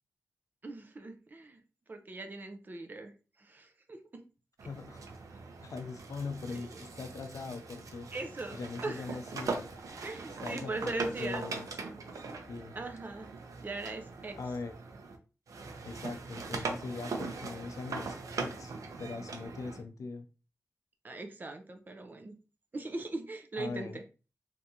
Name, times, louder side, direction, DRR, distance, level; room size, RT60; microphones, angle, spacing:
voice 1, 0.6-1.6 1.9-3.1 3.4-4.0 6.5-6.7 8.1-9.1 10.0-11.5 12.7-13.3 13.6-14.4 21.0-22.4 22.7-24.0, right 2 dB, 35° right, 6 dB, 0.5 m, -40 dB
sound 1, 4.6-15.2 15.5-19.8, right 4 dB, 85° right, 0.6 m, -41 dB
voice 2, 4.7-5.2 5.6-8.1 8.5-9.6 10.4-11.7 12.5-12.7 14.3-14.7 15.8-18.7 19.0-20.2 23.6-24.0, left 4 dB, 80° left, 8 dB, 0.5 m, -41 dB
3.5 x 2.6 x 2.8 m, 0.33 s
wide cardioid pair, 135°, 6 cm